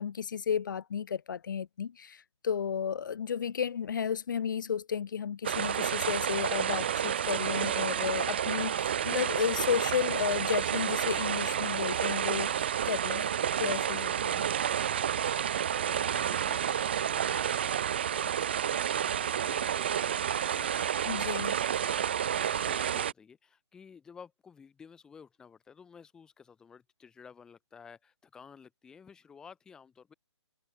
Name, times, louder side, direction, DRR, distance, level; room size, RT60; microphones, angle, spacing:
voice 1, 0.0-13.2 13.6-14.5 21.1-21.5, left 7 dB, 40° left, 1.5 m, -33 dB
sound 1, 5.4-23.1, right 9 dB, 20° right, 0.5 m, -30 dB
voice 2, 15.7-30.1, left 6 dB, 5° left, 1.8 m, -53 dB
hypercardioid pair, 175°, 15 cm